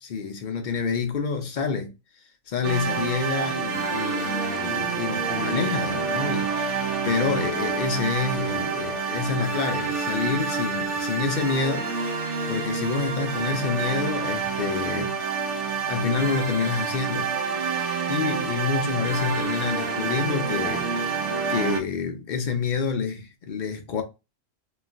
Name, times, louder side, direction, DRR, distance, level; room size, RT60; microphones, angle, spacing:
voice 1, 0.0-1.9 2.2-11.9 12.5-15.2 15.6-17.4 17.7-21.1 21.5-24.0, left 5 dB, 60° left, 0.5 m, -28 dB
sound 1, 2.6-21.8, right 5 dB, 70° right, 1.0 m, -28 dB
3.0 x 2.4 x 2.4 m
omnidirectional pair, 1.3 m